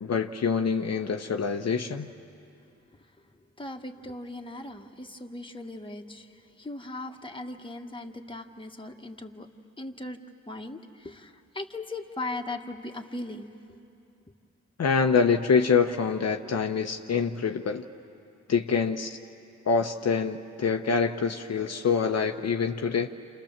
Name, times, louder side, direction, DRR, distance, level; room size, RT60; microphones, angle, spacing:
voice 1, 0.0-2.1 14.8-17.8 18.5-19.2 19.7-23.1, left 5 dB, 60° left, 4 dB, 1.0 m, -25 dB
voice 2, 3.6-9.5 9.8-10.2 10.5-13.8, left 2 dB, 15° left, 3 dB, 1.7 m, -38 dB
29.5 x 27.5 x 7.4 m, 2.7 s
cardioid pair, 60°, 29 cm